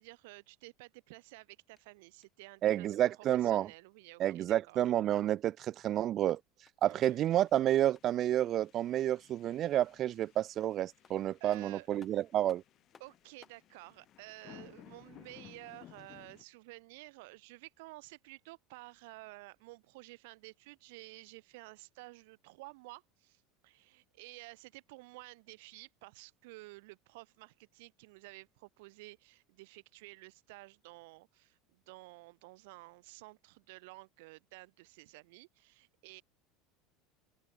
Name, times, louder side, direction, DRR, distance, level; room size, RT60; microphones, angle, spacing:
voice 1, 0.0-4.8 6.9-7.2 11.1-11.9 13.0-36.2, right 24 dB, 70° right, 3.9 m, -52 dB
sound 1, 1.7-3.0 6.0-8.3 10.6-10.7 11.0-13.7, left 6 dB, 20° left, 2.1 m, -65 dB
voice 2, 2.6-3.7 4.2-6.4 6.8-12.6, right 12 dB, 30° right, 0.4 m, -30 dB
sound 2, 6.9-16.4, left 12 dB, 35° left, 5.7 m, -59 dB
open air
supercardioid pair, 165°, 0 cm